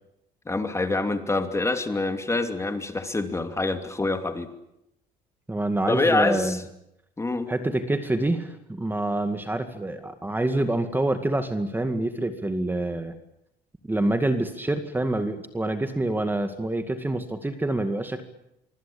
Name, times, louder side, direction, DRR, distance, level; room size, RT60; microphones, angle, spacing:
voice 1, 0.5-4.5 5.9-6.6 7.2-7.5, left 2 dB, 15° left, 7 dB, 2.7 m, -26 dB
voice 2, 5.5-6.6 7.5-13.1 13.9-18.2, right 2 dB, 10° right, 8 dB, 2.1 m, -26 dB
25.0 x 24.5 x 8.7 m, 0.84 s
cardioid pair, 110°, 17 cm